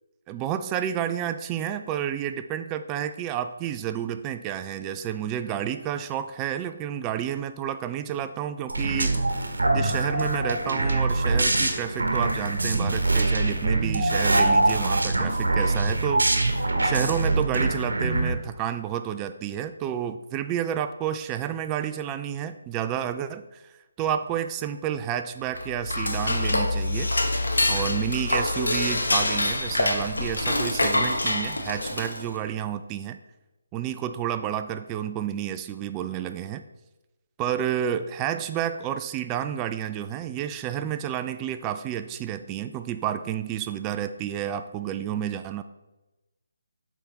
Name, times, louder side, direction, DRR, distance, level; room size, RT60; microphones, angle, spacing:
voice 1, 0.3-9.4 9.7-23.6 24.0-27.1 27.7-33.2 33.7-36.6 37.4-45.6, right 10 dB, 20° right, 10 dB, 0.3 m, -30 dB
sound 1, 8.7-18.3, right 2 dB, 80° right, 1.0 m, -24 dB
Dishes pots and pans / Cutlery silverware, 25.5-32.4, left 1 dB, 80° left, 1.1 m, -25 dB
7.8 x 3.6 x 4.0 m, 1.0 s
figure-of-eight pair, 150°, 0 cm